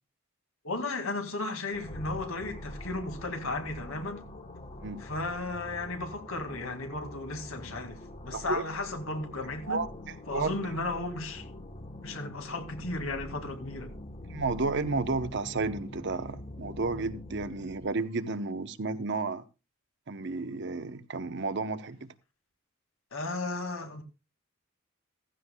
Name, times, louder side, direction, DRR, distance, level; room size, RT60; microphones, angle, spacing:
voice 1, 0.6-4.2 5.0-9.8 10.3-11.5 12.0-13.9 23.1-24.0, left 2 dB, 75° left, 2.1 m, -35 dB
sound 1, 1.7-17.9, left 1 dB, 30° left, 1.1 m, -44 dB
voice 2, 8.3-8.6 9.7-10.5 14.3-19.4 20.1-22.1, right 3 dB, 55° right, 0.8 m, -32 dB
15.0 x 14.5 x 2.2 m
head